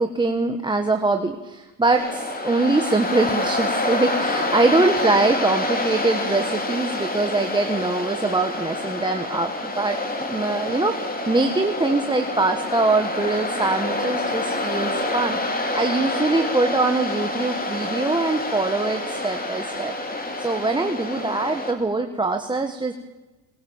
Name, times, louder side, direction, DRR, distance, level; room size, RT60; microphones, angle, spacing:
voice 1, 0.0-10.0 10.3-19.9 20.4-22.9, right 3 dB, 10° right, 5 dB, 1.3 m, -23 dB
Waves surf, 1.9-21.7, left 2 dB, 20° left, 3.4 m, -27 dB
23.0 x 21.5 x 7.2 m, 1.1 s
cardioid pair, 120°, 47 cm